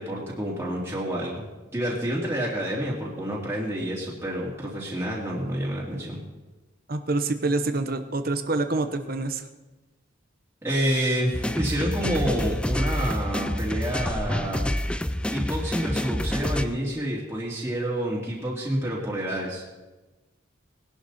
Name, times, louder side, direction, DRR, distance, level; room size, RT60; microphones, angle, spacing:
voice 1, 0.0-1.4 1.7-6.2 10.6-14.6 15.3-19.7, equal, 10° right, -6 dB, 2.9 m, -28 dB
voice 2, 6.9-9.4, right 2 dB, 45° right, 7 dB, 0.9 m, -27 dB
sound 1, 11.3-16.6, left 1 dB, 5° left, 0.4 m, -27 dB
19.5 x 11.5 x 4.2 m, 1.1 s
head